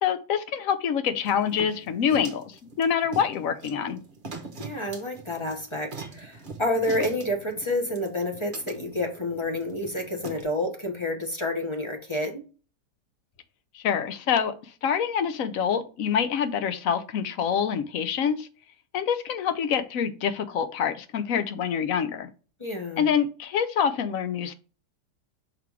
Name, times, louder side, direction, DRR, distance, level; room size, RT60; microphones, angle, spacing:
voice 1, 0.0-4.0 13.7-18.5 18.9-22.3 23.0-24.5, left 7 dB, 65° left, 11 dB, 1.0 m, -26 dB
sound 1, 1.3-10.4, right 3 dB, 35° right, 1.0 m, -42 dB
voice 2, 4.6-12.4 22.6-23.1, left 1 dB, 20° left, 2 dB, 1.0 m, -29 dB
5.9 x 3.5 x 4.7 m, 0.36 s
omnidirectional pair, 1.8 m